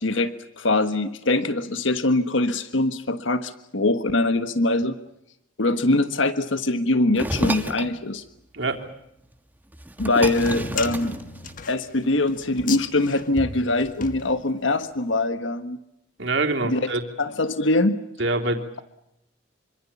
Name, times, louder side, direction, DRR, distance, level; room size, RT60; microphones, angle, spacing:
voice 1, 0.0-5.0 5.6-8.2 10.0-11.1 11.7-15.8 16.6-16.9 17.2-18.0, left 2 dB, 80° left, 10 dB, 1.5 m, -23 dB
sound 1, 7.1-7.9 9.3-9.4 9.7-11.8, right 1 dB, 10° right, 1.3 m, -30 dB
voice 2, 8.5-8.8 10.2-10.4 16.2-17.0 18.2-18.6, right 2 dB, 70° right, 3 dB, 3.5 m, -25 dB
sound 2, 10.3-14.8, left 4 dB, 45° left, 1.3 m, -35 dB
27.0 x 25.5 x 7.2 m, 0.79 s
head